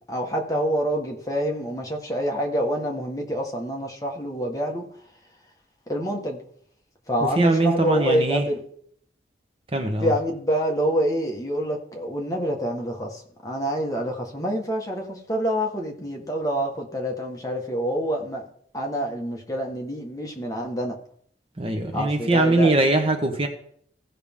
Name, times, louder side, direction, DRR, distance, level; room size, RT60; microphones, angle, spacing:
voice 1, 0.0-4.9 5.9-6.4 7.1-8.6 10.0-18.5 18.7-21.0 21.9-22.8, equal, 20° left, 1.5 m, -27 dB
voice 2, 7.2-8.5 9.7-10.1 21.6-23.5, right 2 dB, 30° right, 1.1 m, -21 dB
16.0 x 5.9 x 3.7 m
head